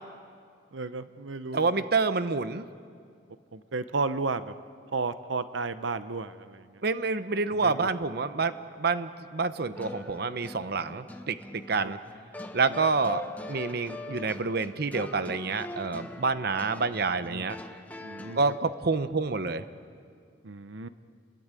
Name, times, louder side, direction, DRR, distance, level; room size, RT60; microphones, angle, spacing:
voice 1, 0.7-1.7 3.5-4.5 4.9-6.8 7.5-7.9 10.9-11.1 11.8-11.9 12.7-12.8 17.0-17.4 18.0-18.4 20.4-20.9, right 3 dB, 85° right, 12 dB, 0.8 m, -33 dB
voice 2, 1.5-2.7 6.8-12.0 12.5-13.2 13.5-17.6 18.4-19.6, right 4 dB, 55° right, 12 dB, 0.8 m, -28 dB
sound 1, 9.7-18.6, left 1 dB, 10° left, 1.2 m, -42 dB
29.5 x 21.5 x 9.0 m, 2.2 s
head